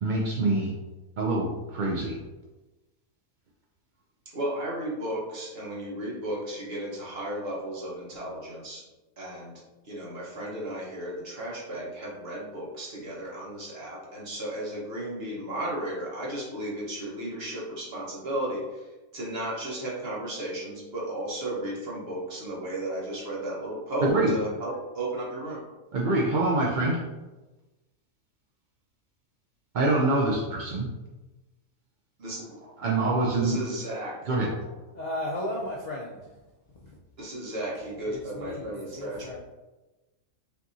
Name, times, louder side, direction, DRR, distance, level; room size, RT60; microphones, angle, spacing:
voice 1, 0.0-0.7 1.2-2.1 24.0-24.3 25.9-27.0 29.7-30.9 32.8-33.6 34.3-34.5, right 2 dB, 70° right, -3 dB, 0.4 m, -25 dB
voice 2, 4.3-8.8 9.2-9.5 9.8-18.9 19.1-25.6 32.2-32.7 33.3-34.2 37.2-39.4, right 1 dB, 45° right, -5 dB, 1.3 m, -34 dB
voice 3, 34.9-36.2 38.0-39.4, left 1 dB, 60° left, -3 dB, 0.4 m, -34 dB
5.5 x 2.9 x 2.7 m, 1.1 s
omnidirectional pair, 1.5 m